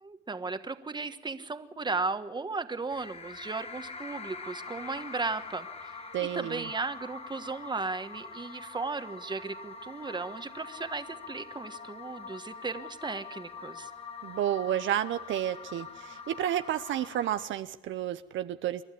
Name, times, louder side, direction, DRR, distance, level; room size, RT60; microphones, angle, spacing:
voice 1, 0.0-5.9 6.2-13.9, right 3 dB, 20° right, 9 dB, 1.3 m, -36 dB
sound 1, 2.9-17.4, left 4 dB, 30° left, 1.3 m, -44 dB
voice 2, 6.1-6.7 14.2-18.8, right 11 dB, 75° right, 11 dB, 0.7 m, -31 dB
28.0 x 12.0 x 8.5 m, 1.0 s
cardioid pair, 90°, 20 cm